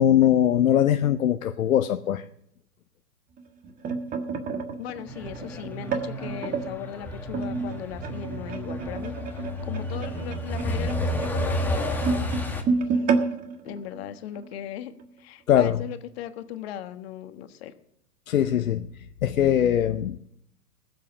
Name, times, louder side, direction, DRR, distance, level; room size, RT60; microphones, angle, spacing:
voice 1, 0.0-2.3 15.5-15.8 18.3-20.2, left 10 dB, 60° left, 9 dB, 0.8 m, -21 dB
sound 1, 3.4-6.7 7.3-14.6 15.0-15.2 15.5-15.8 16.5-16.6, right 4 dB, 15° right, 1.6 m, -30 dB
voice 2, 4.8-12.3 12.8-13.3 13.6-14.9 15.2-17.7, left 11 dB, 40° left, 10 dB, 1.4 m, -38 dB
Truck, 5.1-12.6, left 1 dB, 5° left, 1.6 m, -31 dB
20.0 x 7.7 x 7.2 m, 0.76 s
figure-of-eight pair, 115°, 47 cm